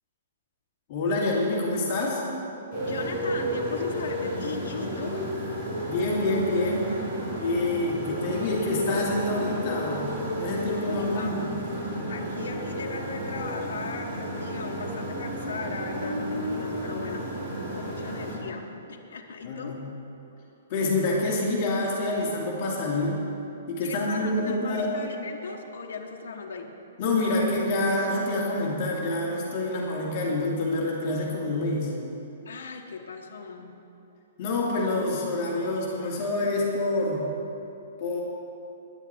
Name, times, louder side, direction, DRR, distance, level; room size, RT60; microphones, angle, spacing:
voice 1, 0.9-2.2 5.9-6.9 7.4-11.4 19.4-19.8 20.7-23.2 23.7-24.9 27.0-31.9 34.4-37.2 38.0-38.2, left 2 dB, 30° left, -4 dB, 2.5 m, -27 dB
Motorcycle, 2.7-18.4, equal, 25° right, 3.8 m, -32 dB
voice 2, 2.8-5.2 10.8-11.4 12.1-17.4 17.7-19.8 23.8-26.7 32.4-33.8, left 5 dB, 85° left, 1 dB, 1.2 m, -38 dB
10.5 x 7.9 x 9.5 m, 2.9 s
hypercardioid pair, 175°, 0 cm